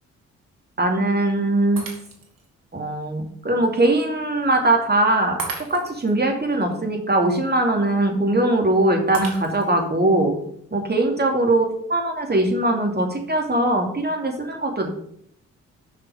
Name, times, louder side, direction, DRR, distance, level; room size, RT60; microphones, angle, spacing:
voice 1, 0.8-1.8 2.7-5.4 5.7-10.3 10.7-14.9, right 2 dB, 25° right, 3 dB, 2.7 m, -21 dB
Shatter, 1.8-2.5 3.0-3.1 5.4-6.1 9.1-9.9, right 4 dB, 65° right, 2.1 m, -34 dB
7.3 x 6.0 x 7.2 m, 0.67 s
hypercardioid pair, 40°, 37 cm